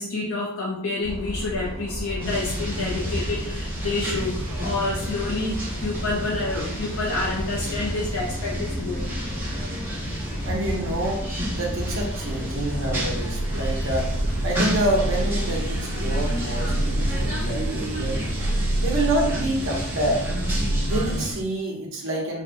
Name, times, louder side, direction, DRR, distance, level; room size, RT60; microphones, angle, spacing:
voice 1, 0.0-9.2, left 2 dB, 75° left, -3 dB, 0.5 m, -28 dB
sound 1, 1.0-15.1, equal, 30° left, 1.0 m, -34 dB
sound 2, 2.2-21.3, equal, 10° right, 0.6 m, -31 dB
sound 3, 3.8-3.9 4.1-21.4, right 1 dB, 90° right, 0.4 m, -30 dB
voice 2, 10.4-11.2 11.6-14.1 14.4-18.4 18.8-20.2 20.9-22.4, right 1 dB, 60° right, -1 dB, 0.7 m, -27 dB
2.8 x 2.1 x 2.6 m, 0.73 s
head